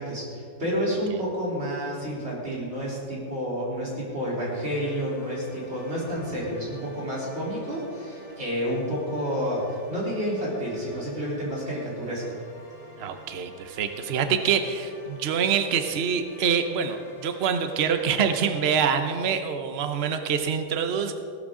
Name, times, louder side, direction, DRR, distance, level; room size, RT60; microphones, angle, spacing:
voice 1, 0.0-12.4, equal, 30° right, -6 dB, 3.8 m, -30 dB
sound 1, 4.5-18.6, left 1 dB, 25° left, 3.9 m, -49 dB
voice 2, 13.0-21.2, right 7 dB, 90° right, 7 dB, 0.5 m, -25 dB
16.5 x 12.5 x 3.8 m, 2.5 s
omnidirectional pair, 2.2 m